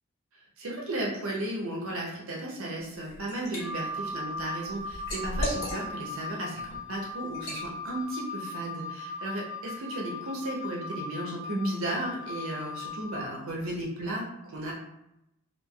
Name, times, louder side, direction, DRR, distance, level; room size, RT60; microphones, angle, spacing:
voice 1, 0.3-14.7, right 1 dB, 70° right, -2 dB, 0.6 m, -34 dB
Liquid, 2.8-3.6 4.0-6.1 6.6-6.8 7.3-7.7, equal, 90° left, 1.4 m, -35 dB
Wind instrument woodwind instrument, 3.6-13.2, left 2 dB, 5° right, 0.3 m, -38 dB
3.1 x 2.4 x 2.3 m, 0.85 s
head